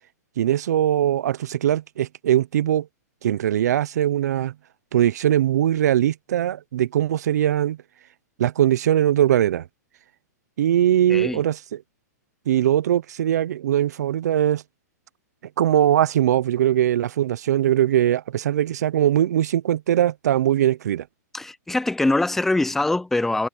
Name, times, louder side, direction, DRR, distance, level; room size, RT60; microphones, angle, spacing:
voice 1, 0.4-2.9 3.2-4.5 4.9-7.8 8.4-9.7 10.6-11.8 12.5-14.6 15.6-21.1, right 11 dB, 70° right, 0.8 m, -21 dB
voice 2, 11.1-11.4 21.3-23.5, left 2 dB, 5° left, 0.5 m, -23 dB
hypercardioid pair, 155°, 9 cm